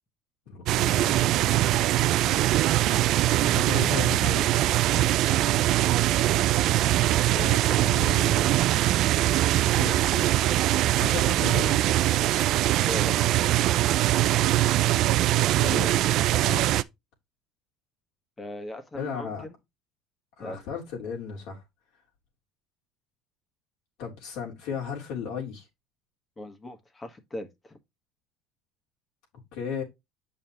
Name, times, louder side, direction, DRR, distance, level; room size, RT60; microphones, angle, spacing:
voice 1, 0.5-1.2 3.4-4.5 7.3-8.4 9.7-10.6 11.0-11.8 15.5-15.9 16.3-16.8 18.9-19.5 20.4-21.6 24.0-25.7 29.5-29.8, left 6 dB, 75° left, 3.5 m, -35 dB
sound 1, 0.7-16.8, right 14 dB, 60° right, 0.4 m, -22 dB
voice 2, 12.8-13.4 18.4-19.5 20.4-20.7 26.4-27.8, left 1 dB, 20° left, 1.6 m, -39 dB
8.2 x 5.5 x 3.1 m
supercardioid pair, 90°, 0 cm